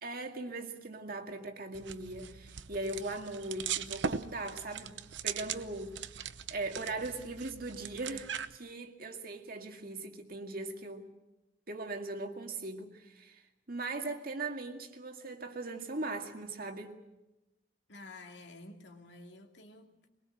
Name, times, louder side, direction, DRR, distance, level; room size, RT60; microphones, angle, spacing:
voice 1, 0.0-6.2 6.5-11.1 11.7-17.0, right 2 dB, 55° right, 2.1 m, -40 dB
sound 1, 1.7-8.6, right 7 dB, 80° right, 0.8 m, -40 dB
voice 2, 17.9-20.1, left 2 dB, 75° left, 2.6 m, -51 dB
22.5 x 22.0 x 7.8 m
head